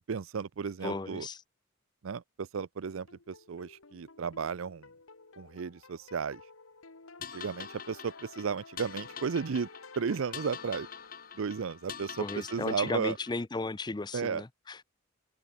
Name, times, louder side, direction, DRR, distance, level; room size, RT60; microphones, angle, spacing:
voice 1, 0.1-1.3 2.0-4.9 5.4-6.4 7.3-9.7 10.0-10.9 11.4-13.2 14.1-14.4, right 6 dB, 75° right, 0.5 m, -34 dB
voice 2, 0.8-1.4 12.2-14.8, left 3 dB, 20° left, 0.5 m, -35 dB
sound 1, 2.8-11.7, left 4 dB, 80° left, 1.9 m, -53 dB
sound 2, 7.2-13.4, left 7 dB, 45° left, 3.3 m, -45 dB
open air
head